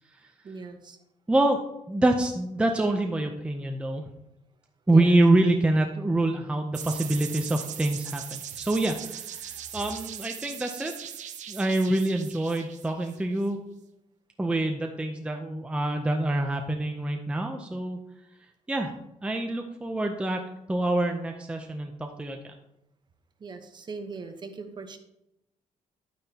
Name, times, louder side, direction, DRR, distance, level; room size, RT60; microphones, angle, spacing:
voice 1, 0.4-1.0 4.9-5.2 9.4-10.0 23.4-25.0, right 4 dB, 35° right, 7 dB, 1.0 m, -40 dB
voice 2, 1.3-1.6 1.9-4.1 4.9-9.4 9.7-10.9 11.5-13.6 14.4-18.0 18.7-18.9 19.2-20.4 20.7-22.5, right 2 dB, 10° right, 3 dB, 0.6 m, -26 dB
sound 1, 6.7-13.5, right 9 dB, 65° right, 0.7 m, -39 dB
11.0 x 9.2 x 2.8 m, 0.88 s
cardioid pair, 155°, 13 cm